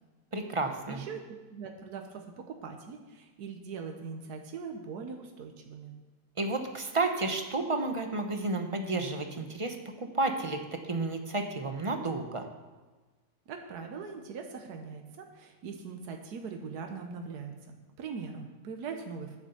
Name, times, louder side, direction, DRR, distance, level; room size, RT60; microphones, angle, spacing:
voice 1, 0.3-1.0 6.4-12.5, right 2 dB, 25° right, 5 dB, 0.7 m, -31 dB
voice 2, 0.9-5.9 13.5-19.4, right 5 dB, 85° right, 4 dB, 1.5 m, -41 dB
9.7 x 7.1 x 6.9 m, 1.3 s
omnidirectional pair, 1.6 m